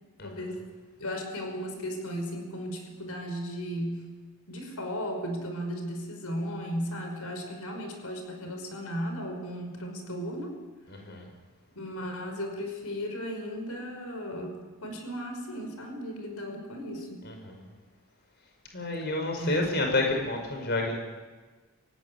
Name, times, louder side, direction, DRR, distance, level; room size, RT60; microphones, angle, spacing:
voice 1, 0.2-0.7 1.0-4.1 4.5-10.6 11.8-17.3 19.4-19.9, equal, 90° left, 4 dB, 5.3 m, -35 dB
voice 2, 10.9-11.3 17.3-17.6 18.7-21.0, left 2 dB, 50° left, 2 dB, 5.1 m, -29 dB
27.0 x 16.0 x 9.7 m, 1.3 s
head